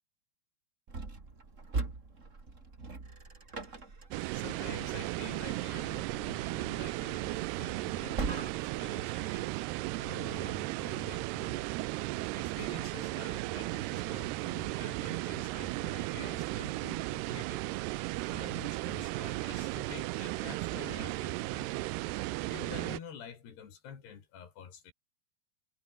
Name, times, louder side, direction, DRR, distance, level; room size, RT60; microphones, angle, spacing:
sound 1, 0.9-8.9, right 3 dB, 20° right, 2.6 m, -42 dB
sound 2, 4.1-23.0, right 20 dB, 85° right, 2.8 m, -35 dB
voice 1, 4.3-9.5 10.0-11.6 12.4-17.6 18.3-21.9 22.5-24.9, left 7 dB, 80° left, 5.7 m, -48 dB
omnidirectional pair, 4.6 m